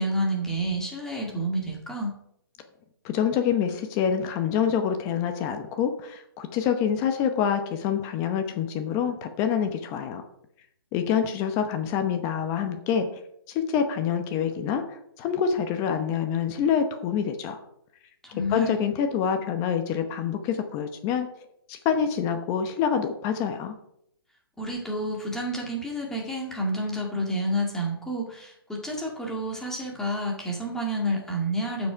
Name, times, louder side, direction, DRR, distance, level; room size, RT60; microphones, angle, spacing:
voice 1, 0.0-2.2 18.2-18.8 24.6-31.9, right 1 dB, 5° left, -1 dB, 2.0 m, -29 dB
voice 2, 3.0-10.2 10.9-13.1 13.5-17.6 18.5-21.3 21.7-23.7, left 7 dB, 25° left, 7 dB, 0.9 m, -26 dB
12.0 x 6.2 x 5.0 m, 0.75 s
hypercardioid pair, 155°, 13 cm